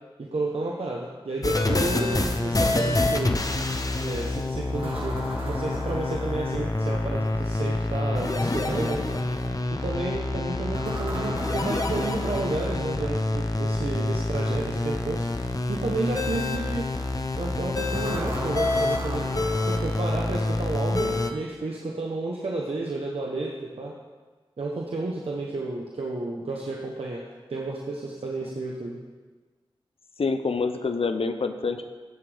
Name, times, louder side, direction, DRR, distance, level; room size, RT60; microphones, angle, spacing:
voice 1, 0.2-3.3 4.0-9.2 9.8-15.3 15.7-16.9 17.4-19.3 19.7-23.9 24.6-27.2 27.5-29.0, right 2 dB, 85° right, -2 dB, 1.1 m, -31 dB
sound 1, 1.4-21.3, left 2 dB, 40° left, 0.9 m, -27 dB
sound 2, 4.8-7.1 10.7-13.3 17.9-20.5, right 1 dB, 65° right, 1.8 m, -37 dB
voice 2, 30.2-31.9, left 4 dB, 75° left, 8 dB, 0.7 m, -26 dB
15.5 x 7.4 x 3.5 m, 1.4 s
wide cardioid pair, 55°, 10 cm